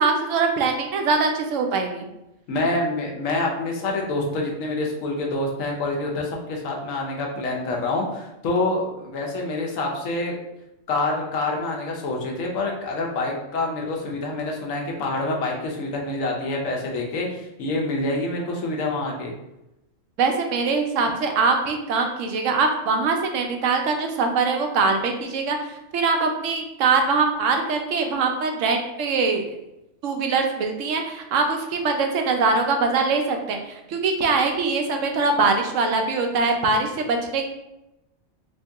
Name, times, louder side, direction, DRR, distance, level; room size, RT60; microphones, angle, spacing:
voice 1, 0.0-2.1 20.2-25.6 25.9-29.4 30.0-37.5, right 4 dB, 75° right, 4 dB, 0.9 m, -22 dB
voice 2, 2.5-10.4 10.9-19.3, left 2 dB, 80° left, 0 dB, 1.1 m, -26 dB
3.0 x 2.7 x 3.4 m, 0.91 s
omnidirectional pair, 1.3 m